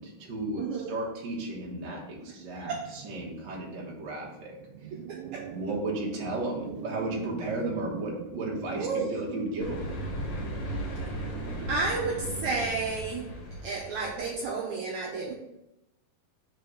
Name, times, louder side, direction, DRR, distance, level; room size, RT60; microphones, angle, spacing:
voice 1, 0.0-4.6 5.5-9.9, right 2 dB, 50° right, -3 dB, 1.4 m, -34 dB
voice 2, 0.6-0.9 2.5-2.8 5.1-5.5 8.8-9.1 11.7-13.3 13.6-15.3, right 4 dB, 70° right, -2 dB, 1.9 m, -31 dB
sound 1, 2.6-3.8 4.1-4.2 4.4-12.7, right 7 dB, 90° right, 2.3 m, -42 dB
sound 2, 9.6-14.5, equal, 55° left, 2.0 m, -37 dB
5.0 x 3.9 x 5.8 m, 0.89 s
omnidirectional pair, 4.0 m